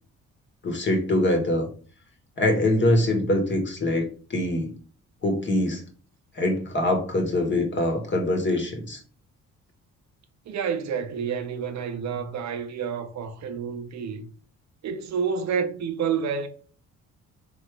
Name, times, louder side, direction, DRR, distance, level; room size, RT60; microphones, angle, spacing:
voice 1, 0.6-1.7 2.4-4.7 5.2-5.8 6.3-9.0, left 1 dB, 40° left, 1.5 m, -24 dB
voice 2, 10.5-14.3 14.8-16.5, right 6 dB, 65° right, 0.7 m, -29 dB
3.4 x 3.0 x 4.5 m
cardioid pair, 90°, 30 cm